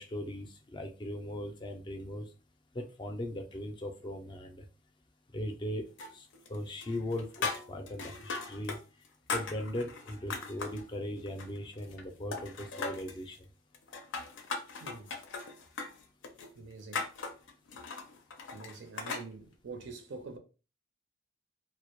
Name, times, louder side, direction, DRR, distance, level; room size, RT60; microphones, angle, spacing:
voice 1, 0.0-2.2 2.7-4.6 5.3-5.8 6.1-8.8 9.3-13.4, left 1 dB, 25° left, 0.4 m, -39 dB
sound 1, 6.0-6.6 6.8-8.8 9.0-10.8 11.3-12.0 12.3-13.2 13.7-19.3, left 4 dB, 80° left, 0.5 m, -39 dB
voice 2, 14.8-15.2 16.6-17.1 18.5-20.4, right 4 dB, 70° right, 0.5 m, -45 dB
2.1 x 2.0 x 2.9 m
head